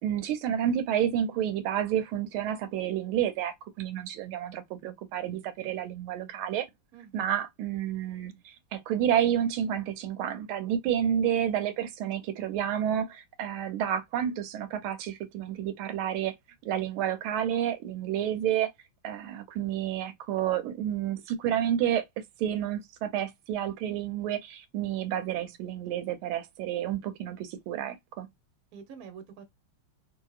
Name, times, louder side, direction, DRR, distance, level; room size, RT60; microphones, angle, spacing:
voice 1, 0.0-6.7 7.1-16.3 16.6-18.7 19.0-28.3, right 10 dB, 90° right, 1.5 m, -30 dB
voice 2, 6.9-7.3 28.7-29.4, right 6 dB, 55° right, 1.1 m, -46 dB
3.1 x 2.8 x 2.3 m
omnidirectional pair, 2.3 m